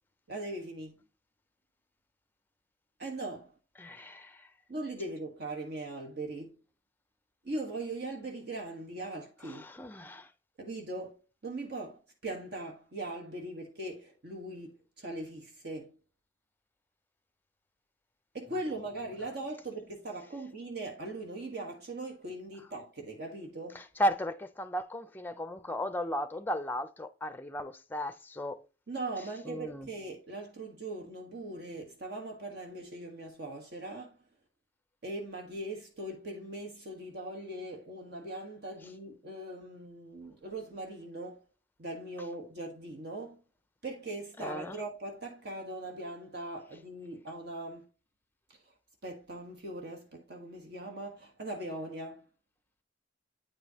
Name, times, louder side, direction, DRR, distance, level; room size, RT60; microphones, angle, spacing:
voice 1, 0.3-1.0 3.0-3.5 4.7-6.5 7.4-9.7 10.6-16.0 18.3-23.8 28.9-34.2 35.0-41.4 41.8-43.4 43.8-47.8 49.0-52.3, right 2 dB, 60° right, 1.3 m, -40 dB
voice 2, 3.8-4.5 9.4-10.3 23.7-28.6 29.5-29.9 44.4-44.8, equal, 10° left, 0.5 m, -35 dB
8.7 x 5.0 x 2.8 m
head